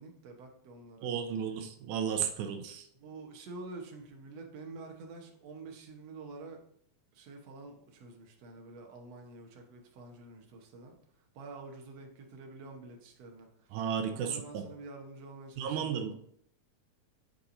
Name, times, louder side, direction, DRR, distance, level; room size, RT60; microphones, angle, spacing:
voice 1, 0.0-1.1 3.0-6.6 7.1-11.0 11.3-13.8 14.1-16.1, right 3 dB, 65° right, 2 dB, 2.1 m, -48 dB
voice 2, 1.0-2.9 13.7-14.6 15.6-16.1, right 7 dB, 90° right, 5 dB, 2.1 m, -34 dB
11.5 x 4.8 x 2.6 m, 0.69 s
omnidirectional pair, 3.4 m